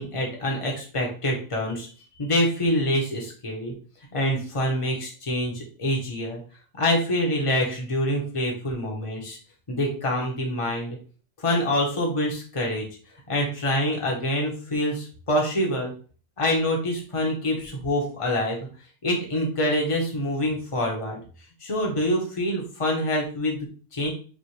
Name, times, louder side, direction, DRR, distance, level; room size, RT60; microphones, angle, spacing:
voice 1, 0.0-1.9 2.2-3.7 4.1-6.4 6.7-9.4 9.7-11.0 11.4-12.8 13.3-15.9 16.4-18.6 19.0-21.2 21.6-23.7 23.9-24.1, left 1 dB, 25° left, 0 dB, 1.1 m, -26 dB
5.3 x 2.5 x 3.2 m, 0.39 s
omnidirectional pair, 1.5 m